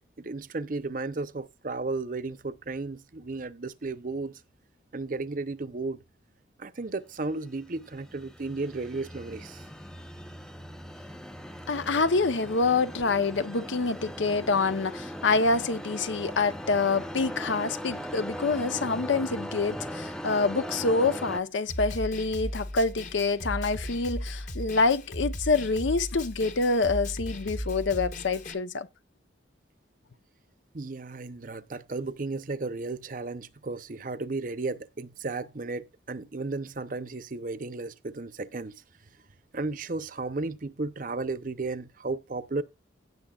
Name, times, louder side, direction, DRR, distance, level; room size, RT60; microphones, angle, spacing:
voice 1, 0.2-4.4 4.9-6.0 6.6-9.6 30.7-38.7 39.5-42.6, right 3 dB, 45° right, 0.7 m, -34 dB
sound 1, 7.3-21.4, equal, 5° left, 0.6 m, -39 dB
voice 2, 11.7-28.9, left 3 dB, 75° left, 0.7 m, -26 dB
Snare drum, 21.7-28.5, equal, 40° left, 1.2 m, -36 dB
17.0 x 6.7 x 2.4 m
head